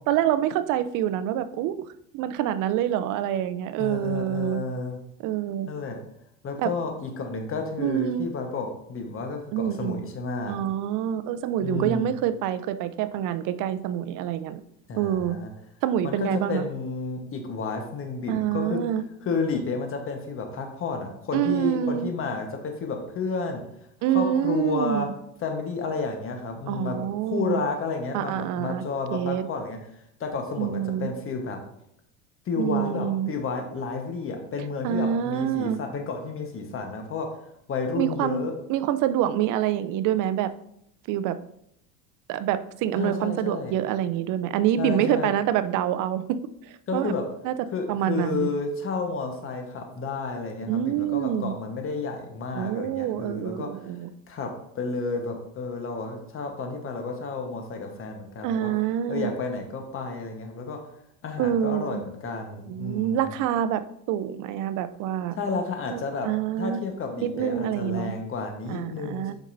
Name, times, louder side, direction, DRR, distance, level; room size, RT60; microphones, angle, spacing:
voice 1, 0.1-1.8 2.1-4.6 5.2-5.7 6.6-6.7 7.8-8.3 9.5-10.0 10.5-14.6 15.0-15.4 15.8-16.6 18.3-19.0 21.3-22.1 24.0-25.1 26.7-27.6 28.1-28.8 29.1-29.5 30.6-31.1 32.6-33.3 34.8-35.8 37.9-40.5 41.1-41.4 42.3-46.4 46.7-47.1 47.4-47.5 47.9-48.5 50.7-51.5 52.5-54.1 58.4-59.3 61.4-62.0 62.7-63.8 64.1-65.4 65.9-66.8 67.2-68.1 68.7-69.3, right 10 dB, 50° right, 13 dB, 0.5 m, -26 dB
voice 2, 3.8-5.0 5.7-6.0 6.4-10.6 11.6-12.1 14.9-15.5 16.0-18.8 19.2-23.6 24.1-25.1 25.4-29.8 30.2-31.6 32.5-37.3 37.7-38.5 43.0-43.7 44.8-45.3 46.9-47.2 47.7-53.9 54.3-54.5 54.7-58.7 59.1-60.8 61.2-63.3 65.4-66.3 66.6-69.3, left 4 dB, 30° left, 4 dB, 1.2 m, -31 dB
7.2 x 5.3 x 2.6 m, 0.73 s
supercardioid pair, 115°, 41 cm